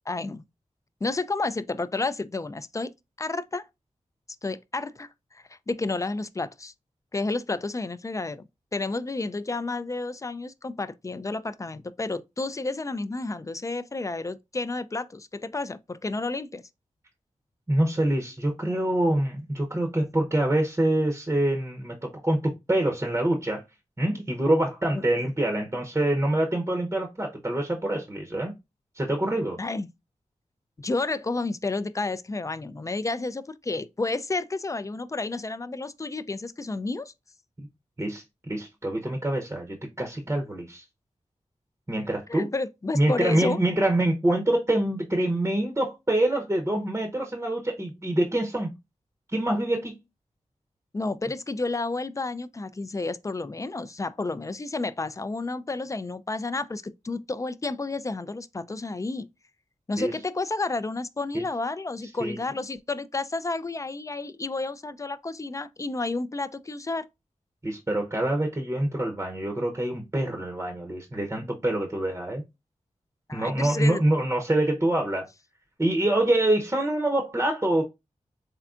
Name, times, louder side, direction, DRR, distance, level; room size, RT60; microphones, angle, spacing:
voice 1, 0.1-0.4 1.0-2.9 3.2-3.7 4.4-6.7 7.1-8.5 8.7-16.6 24.9-25.0 29.6-29.9 30.8-37.1 42.3-43.6 50.9-59.3 59.9-67.1 73.3-74.0, left 3 dB, 25° left, 0.3 m, -31 dB
voice 2, 17.7-23.6 24.0-28.5 29.0-29.6 37.6-37.7 38.0-40.8 41.9-42.5 42.9-48.7 49.3-50.0 60.0-60.1 61.3-61.4 62.2-62.4 67.6-72.4 73.3-75.3 75.8-77.8, right 1 dB, 20° right, 0.7 m, -25 dB
3.6 x 3.4 x 2.4 m
cardioid pair, 45°, 13 cm